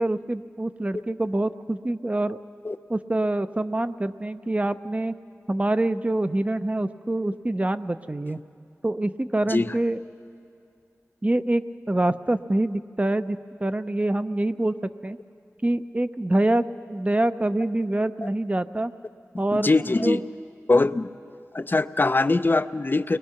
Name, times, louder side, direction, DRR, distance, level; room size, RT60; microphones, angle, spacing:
voice 1, 0.0-2.4 2.9-5.1 5.5-8.4 8.8-10.0 11.2-15.2 15.6-18.9 19.4-20.2, right 1 dB, 25° right, 11 dB, 0.7 m, -25 dB
voice 2, 19.5-20.2 20.7-21.1 21.5-23.2, left 3 dB, 40° left, 13 dB, 0.6 m, -22 dB
30.0 x 21.5 x 5.9 m, 2.5 s
wide cardioid pair, 65°, 6 cm